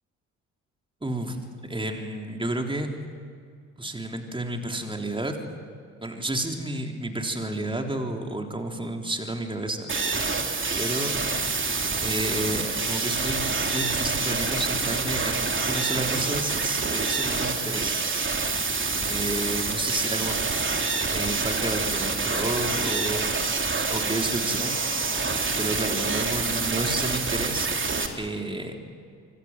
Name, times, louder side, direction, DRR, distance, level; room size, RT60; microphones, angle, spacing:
voice 1, 1.0-2.9 3.8-5.4 6.0-9.9 10.8-11.1 12.0-18.0 19.1-20.7 21.1-23.6 23.9-24.7 25.6-27.7 28.1-28.7, right 1 dB, 15° right, 3 dB, 3.7 m, -31 dB
sound 1, 9.9-28.1, right 4 dB, 30° right, 3.3 m, -27 dB
26.5 x 25.0 x 7.6 m, 2.2 s
hypercardioid pair, 50°, 36 cm